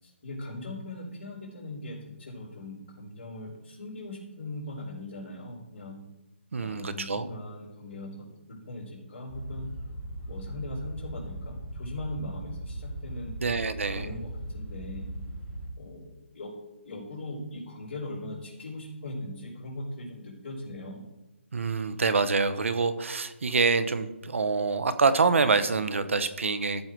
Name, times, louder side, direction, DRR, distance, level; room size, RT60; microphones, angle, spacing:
voice 1, 0.0-5.9 6.6-9.7 10.3-13.3 13.9-15.1 15.8-16.5 16.8-21.1, left 1 dB, 50° left, -10 dB, 4.1 m, -40 dB
voice 2, 6.5-7.3 13.4-14.1 21.5-26.9, right 4 dB, 75° right, 13 dB, 1.0 m, -26 dB
sound 1, 9.3-15.7, right 1 dB, ahead, 4.3 m, -39 dB
15.0 x 5.7 x 4.6 m, 1.0 s
hypercardioid pair, 165°, 7 cm